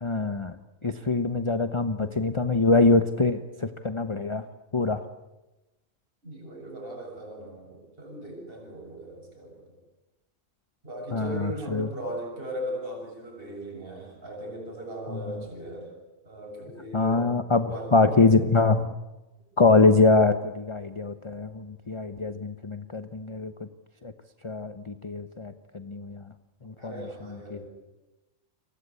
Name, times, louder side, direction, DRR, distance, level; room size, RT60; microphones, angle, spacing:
voice 1, 0.0-0.6 0.8-4.5 4.7-5.0 11.1-11.9 16.9-18.9 19.6-23.7 24.0-24.1 24.4-26.3 26.6-26.9 27.5-27.6, left 3 dB, 25° left, 10 dB, 0.9 m, -24 dB
voice 2, 6.2-9.8 10.8-15.9 16.2-17.3 17.6-18.4 26.8-27.7, right 1 dB, 45° right, 0 dB, 7.3 m, -38 dB
29.5 x 24.0 x 8.4 m, 1.0 s
omnidirectional pair, 1.4 m